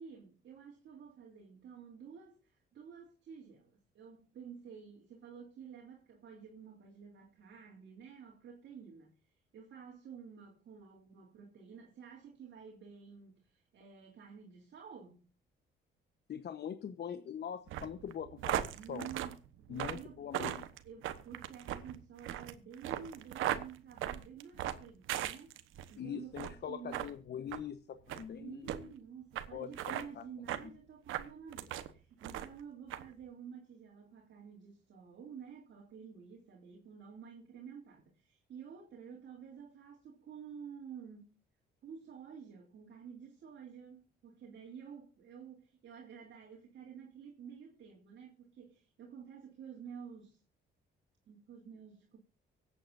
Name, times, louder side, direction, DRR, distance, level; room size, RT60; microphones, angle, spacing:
voice 1, 0.0-9.1 9.5-15.2 18.7-20.2 20.8-25.5 25.9-27.1 28.4-41.4 41.8-50.4 51.3-52.2, right 7 dB, 65° right, 3.2 m, -51 dB
voice 2, 16.3-19.1 19.7-20.7 26.0-28.9 29.5-30.2, left 8 dB, 55° left, 1.1 m, -43 dB
sound 1, 17.7-25.9 26.3-26.6 26.9-27.1 27.5-27.6 28.1-28.3 28.7-28.8 29.4-29.5 29.7-30.1 30.5-30.7 31.1-31.9 32.2-32.6 32.9-33.0, right 12 dB, 90° right, 1.2 m, -38 dB
24.5 x 8.8 x 2.6 m
cardioid pair, 90°, 20 cm